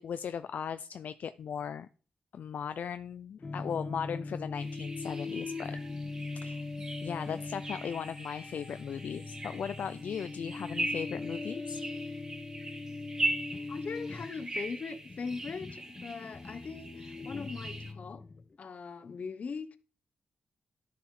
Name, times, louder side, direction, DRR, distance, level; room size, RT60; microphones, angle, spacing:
voice 1, 0.0-1.9 2.3-5.8 6.3-6.6 7.0-11.8, left 7 dB, 70° left, 0.5 m, -37 dB
sound 1, 3.4-18.6, left 3 dB, 30° left, 0.6 m, -41 dB
sound 2, 4.5-17.9, right 2 dB, 25° right, 2.4 m, -40 dB
voice 2, 13.7-18.2 18.6-19.8, left 5 dB, 55° left, 1.0 m, -40 dB
12.0 x 6.8 x 4.9 m
wide cardioid pair, 105°, 3 cm